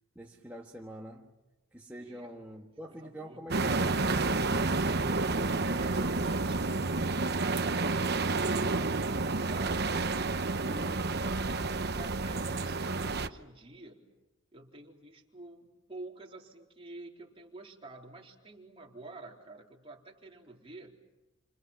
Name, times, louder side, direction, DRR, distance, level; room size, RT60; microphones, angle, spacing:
voice 1, 0.1-1.4 1.7-4.8, right 1 dB, 10° right, -2 dB, 1.6 m, -46 dB
voice 2, 2.0-2.4 2.9-3.5 5.6-6.9 10.5-14.1 14.5-21.0, right 2 dB, 25° right, -1 dB, 4.0 m, -49 dB
sound 1, 3.5-13.3, right 3 dB, 50° right, 1.0 m, -30 dB
29.5 x 27.5 x 7.4 m, 1.0 s
head